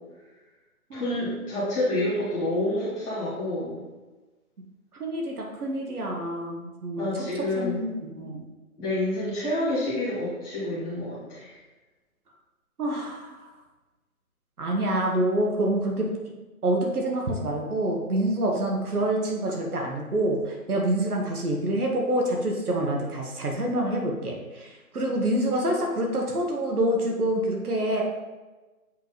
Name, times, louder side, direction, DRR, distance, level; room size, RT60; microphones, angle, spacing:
voice 1, 0.9-3.8 7.0-7.8 8.8-11.6, left 1 dB, 5° left, -14 dB, 1.3 m, -28 dB
voice 2, 4.9-7.2 7.5-8.4 12.8-13.5 14.6-16.1 16.6-28.0, right 1 dB, 80° right, 0 dB, 1.6 m, -27 dB
7.9 x 3.2 x 4.1 m, 1.2 s
hypercardioid pair, 170°, 44 cm